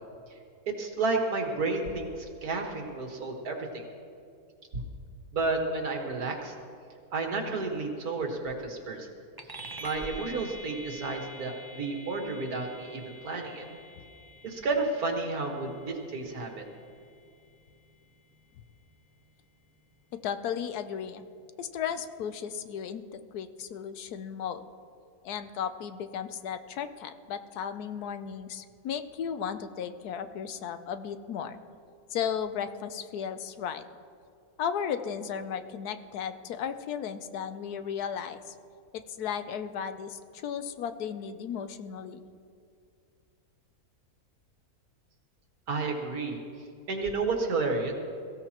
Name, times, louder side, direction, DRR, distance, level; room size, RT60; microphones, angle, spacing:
voice 1, 0.7-3.8 4.7-4.8 5.3-6.5 7.1-9.1 9.8-13.7 14.4-16.6 45.7-46.4 46.9-47.9, right 3 dB, 75° right, 2 dB, 2.1 m, -31 dB
sound 1, 9.4-19.2, equal, 20° right, 0.7 m, -47 dB
voice 2, 20.2-21.2 21.6-24.6 25.2-31.6 32.1-33.8 34.6-38.5 38.9-42.2, left 8 dB, 85° left, 10 dB, 1.2 m, -35 dB
22.5 x 15.5 x 3.0 m, 2.4 s
omnidirectional pair, 1.6 m